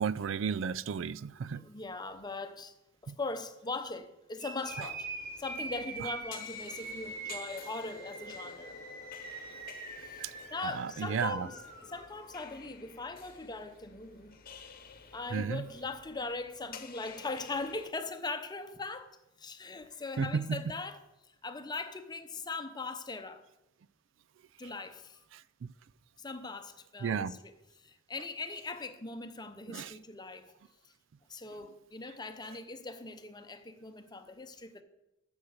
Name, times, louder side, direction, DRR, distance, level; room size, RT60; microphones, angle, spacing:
voice 1, 0.0-1.6 3.1-3.2 4.8-4.9 10.2-10.3 10.6-11.5 15.3-15.7 20.2-20.6 25.3-25.7 27.0-27.4 29.7-29.9, right 6 dB, 70° right, 0.4 m, -33 dB
voice 2, 1.5-2.7 3.0-8.8 10.0-14.4 15.1-19.1 19.4-21.0 21.4-23.4 24.6-25.2 26.2-27.5 27.8-30.5 31.3-34.8, left 3 dB, 20° left, 0.8 m, -40 dB
sound 1, 4.4-12.3, right 3 dB, 50° right, 4.0 m, -44 dB
sound 2, 4.6-17.9, left 5 dB, 45° left, 1.0 m, -51 dB
12.0 x 7.1 x 6.5 m
head